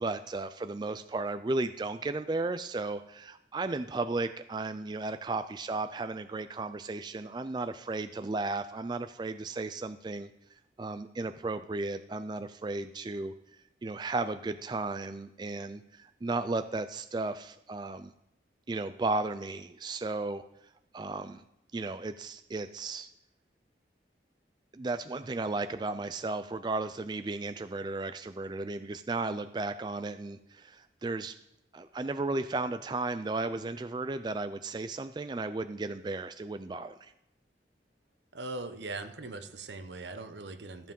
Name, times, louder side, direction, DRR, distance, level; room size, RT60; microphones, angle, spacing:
voice 1, 0.0-10.3 10.8-13.3 13.8-18.1 18.7-20.4 20.9-21.4 21.7-23.1 24.7-31.4 31.7-37.1, right 3 dB, 25° right, 10 dB, 0.3 m, -34 dB
voice 2, 38.3-40.9, right 2 dB, 75° right, 9 dB, 0.9 m, -40 dB
14.0 x 7.3 x 5.4 m, 0.85 s
head